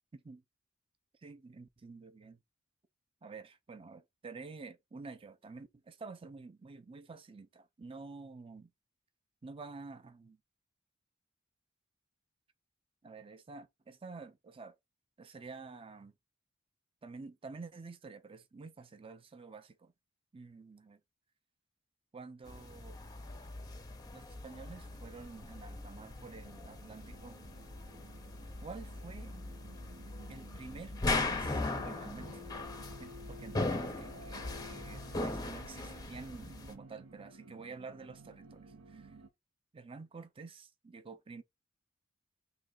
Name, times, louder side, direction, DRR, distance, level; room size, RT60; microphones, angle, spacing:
voice 1, 1.2-2.4 3.2-8.7 9.4-10.4 13.0-14.8 15.2-16.1 17.0-19.9 20.3-21.0 22.1-23.0 24.1-27.4 28.6-29.4 30.3-32.4 33.0-38.6 38.9-39.1 39.7-41.4, right 4 dB, 25° right, 0.5 m, -49 dB
sound 1, 22.5-36.7, left 2 dB, 20° left, 0.6 m, -39 dB
sound 2, 24.1-39.3, right 1 dB, 85° right, 0.7 m, -53 dB
3.3 x 2.9 x 3.9 m
head